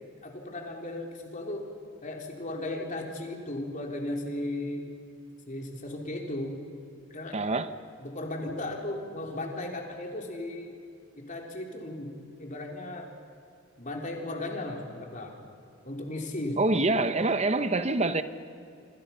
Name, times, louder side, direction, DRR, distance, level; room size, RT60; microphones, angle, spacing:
voice 1, 0.2-1.7 2.0-4.9 5.5-6.6 7.1-7.4 8.0-10.8 11.1-13.1 13.8-15.3 15.8-16.9, left 1 dB, 40° left, 3.6 m, -36 dB
voice 2, 7.3-7.7 16.6-18.2, right 2 dB, 35° right, 1.0 m, -25 dB
27.5 x 26.0 x 5.8 m
head